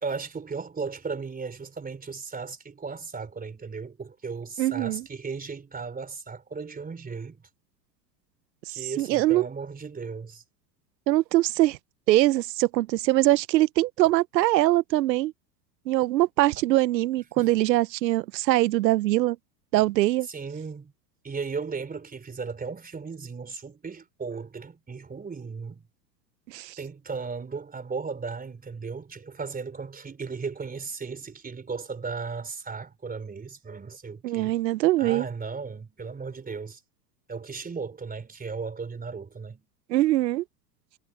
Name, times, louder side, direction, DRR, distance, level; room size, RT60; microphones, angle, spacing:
voice 1, 0.0-7.4 8.7-10.4 17.4-17.5 20.2-20.9 21.2-25.9 26.8-34.6 35.0-36.8 37.3-39.7, right 5 dB, 15° right, 3.7 m, -36 dB
voice 2, 4.6-5.0 9.0-9.5 11.1-11.8 12.1-15.3 15.9-19.4 19.7-20.3 26.5-26.8 34.2-35.3 39.9-40.4, right 16 dB, 80° right, 1.0 m, -22 dB
hypercardioid pair, 100°, 50 cm